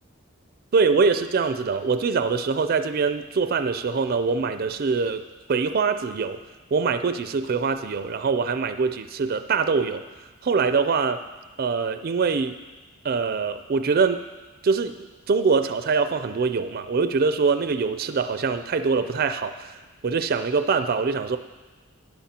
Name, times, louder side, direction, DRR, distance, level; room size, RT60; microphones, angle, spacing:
voice 1, 0.7-6.4 6.7-10.0 10.4-11.2 11.6-12.6 13.0-14.2 14.6-15.0 15.3-19.8 20.0-21.4, right 5 dB, 45° right, 9 dB, 0.4 m, -23 dB
16.0 x 10.5 x 2.8 m, 1.3 s
head